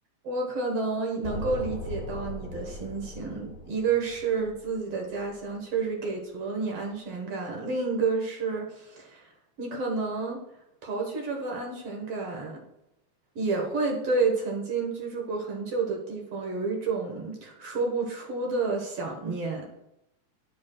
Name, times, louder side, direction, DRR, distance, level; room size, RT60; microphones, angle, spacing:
voice 1, 0.2-9.3 9.6-10.4 10.8-12.6 13.4-19.7, right 4 dB, 55° right, 0 dB, 2.2 m, -30 dB
sound 1, 1.2-5.4, left 1 dB, 85° left, 2.9 m, -39 dB
10.5 x 8.4 x 2.3 m, 0.84 s
omnidirectional pair, 3.4 m